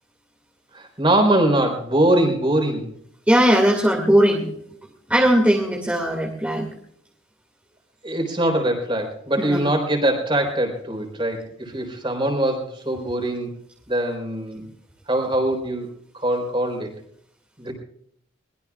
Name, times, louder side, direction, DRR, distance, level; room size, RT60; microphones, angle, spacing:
voice 1, 0.7-2.9 8.0-13.5 13.9-14.7 15.1-15.9 16.1-16.9 17.6-17.7, right 1 dB, 25° right, 3 dB, 4.0 m, -22 dB
voice 2, 3.3-4.5 5.1-6.7 9.4-9.6, equal, 10° right, -1 dB, 2.3 m, -18 dB
22.5 x 21.0 x 2.4 m, 0.67 s
head